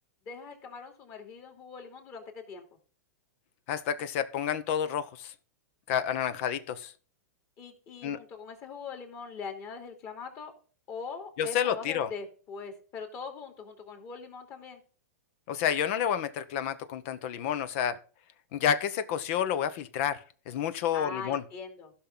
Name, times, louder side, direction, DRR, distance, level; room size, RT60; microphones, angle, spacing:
voice 1, 0.2-2.6 7.6-10.5 10.9-14.8 20.9-21.9, left 5 dB, 35° left, 3.0 m, -42 dB
voice 2, 3.7-5.3 5.9-6.9 8.0-8.2 11.4-12.1 15.5-18.0 18.5-21.4, left 9 dB, 50° left, 0.8 m, -30 dB
15.5 x 5.9 x 3.8 m
hypercardioid pair, 120°, 9 cm